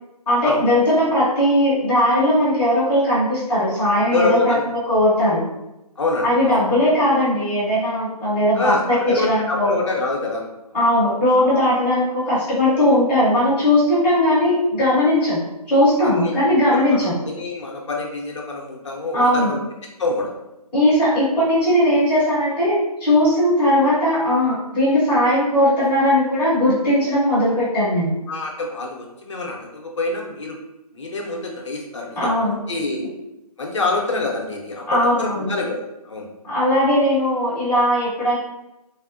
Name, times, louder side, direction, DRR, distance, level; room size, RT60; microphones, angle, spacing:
voice 1, 0.3-4.5 4.9-5.4 6.2-9.7 10.7-15.4 15.7-17.2 19.1-19.5 20.7-28.1 32.2-32.6 34.9-35.5 36.5-38.4, left 1 dB, 5° left, -14 dB, 0.7 m, -18 dB
voice 2, 4.1-4.6 6.0-6.5 8.5-10.5 10.7-10.9 16.0-16.3 16.7-16.8 17.2-19.6 20.0-20.3 28.3-30.6 30.9-33.0 33.6-36.3, left 3 dB, 45° left, 0 dB, 0.6 m, -26 dB
3.4 x 2.1 x 2.5 m, 0.93 s
figure-of-eight pair, 160°, 20 cm